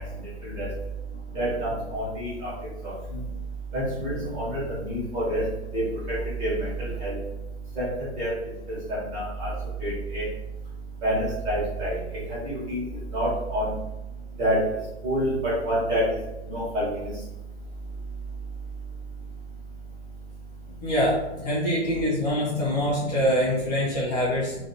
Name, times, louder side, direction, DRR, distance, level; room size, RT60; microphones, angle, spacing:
voice 1, 1.9-2.3 3.7-5.4 5.7-5.8 6.4-7.1 7.8-7.9 8.2-8.3 9.1-9.5 9.8-10.2 11.0-11.2 11.4-11.9 12.4-12.8 13.1-13.7 14.4-14.6 15.0-15.3 15.6-16.0 16.5-16.9, right 1 dB, 20° right, -10 dB, 1.4 m, -27 dB
voice 2, 20.8-24.6, equal, 35° left, -7 dB, 0.7 m, -24 dB
2.7 x 2.7 x 2.7 m, 0.99 s
hypercardioid pair, 160°, 36 cm